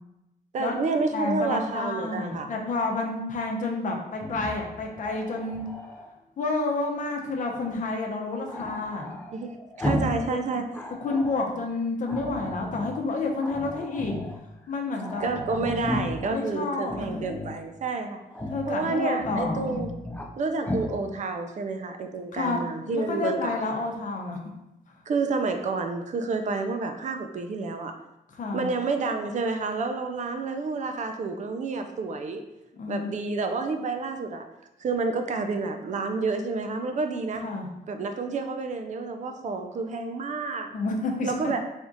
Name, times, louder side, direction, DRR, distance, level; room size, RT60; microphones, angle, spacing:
voice 1, 0.5-2.5 9.3-10.6 15.2-18.2 18.7-19.9 20.4-23.6 25.1-27.9 28.5-32.4 32.9-34.4 34.8-37.4 37.9-40.7 41.2-41.6, right 4 dB, 45° right, 6 dB, 0.5 m, -29 dB
voice 2, 1.1-5.6 6.4-9.1 10.3-10.4 11.0-14.2 14.7-15.2 16.3-17.2 18.5-19.8 22.3-24.4 28.3-28.7 32.7-33.1 37.4-37.7 40.7-41.6, left 3 dB, 50° left, 1 dB, 0.7 m, -29 dB
Growling, 4.1-6.1 8.5-10.3 10.6-11.5 12.1-13.0 13.4-14.4 14.7-14.8 15.0-16.3 16.8-17.6 18.3-18.7 19.1-20.3 20.6-20.9, left 1 dB, 10° left, 0.4 m, -34 dB
3.5 x 2.4 x 3.9 m, 0.91 s
cardioid pair, 105°, 16 cm